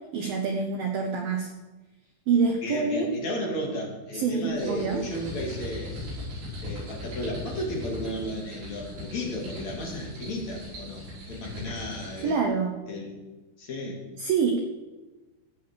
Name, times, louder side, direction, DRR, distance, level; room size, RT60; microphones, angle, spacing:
voice 1, 0.1-1.5 2.3-3.1 4.1-5.0 12.2-12.8 14.2-14.6, right 5 dB, 90° right, 3 dB, 2.0 m, -26 dB
voice 2, 2.6-6.0 6.6-12.4 12.9-13.1 13.6-14.0, equal, 45° left, -2 dB, 3.0 m, -34 dB
sound 1, 4.5-12.3, left 1 dB, 70° right, 8.0 m, -39 dB
16.0 x 7.0 x 6.8 m, 1.2 s
omnidirectional pair, 5.7 m